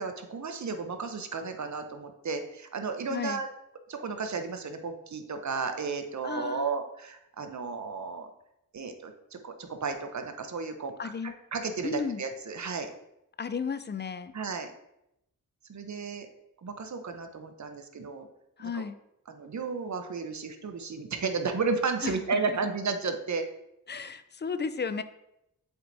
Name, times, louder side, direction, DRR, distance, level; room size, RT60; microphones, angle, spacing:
voice 1, 0.0-3.5 3.9-8.3 8.7-12.9 14.3-14.7 15.7-16.3 16.6-18.3 18.6-18.8 19.3-23.4, right 4 dB, 55° right, 7 dB, 0.8 m, -33 dB
voice 2, 3.1-3.4 6.2-6.7 11.0-11.3 11.8-12.2 13.4-14.3 18.6-19.0 22.0-22.4 23.9-25.0, left 5 dB, 30° left, 12 dB, 0.4 m, -34 dB
7.8 x 4.5 x 2.7 m, 0.84 s
cardioid pair, 45°, 35 cm